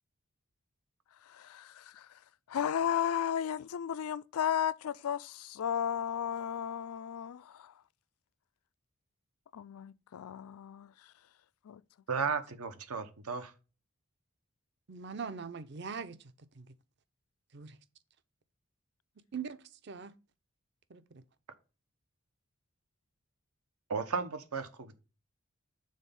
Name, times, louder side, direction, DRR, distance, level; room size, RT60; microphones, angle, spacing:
voice 1, 1.3-2.2 2.5-7.7 9.5-11.1 11.6-11.8, left 9 dB, 85° left, 0.4 m, -34 dB
voice 2, 12.1-13.5 23.9-25.0, right 5 dB, 90° right, 1.0 m, -34 dB
voice 3, 14.9-16.7 17.5-17.8 19.3-20.1 20.9-21.2, right 6 dB, 50° right, 0.6 m, -42 dB
6.5 x 4.0 x 5.2 m
head